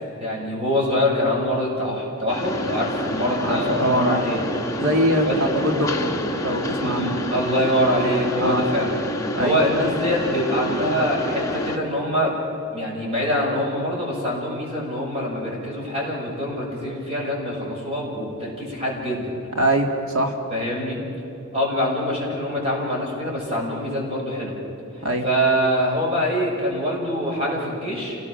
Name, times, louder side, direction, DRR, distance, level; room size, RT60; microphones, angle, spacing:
voice 1, 0.2-4.4 5.2-5.4 6.8-8.9 9.4-12.3 12.7-19.3 20.5-21.0 21.5-24.6 25.2-28.2, equal, 25° right, -3 dB, 6.5 m, -24 dB
Mechanisms, 2.3-11.8, equal, 15° left, 1.6 m, -28 dB
voice 2, 3.4-4.2 4.8-6.1 6.4-7.2 8.4-8.6 9.4-9.6 19.6-20.4 25.0-25.2, equal, 60° right, 3 dB, 2.1 m, -22 dB
29.0 x 18.5 x 6.5 m, 3.0 s
head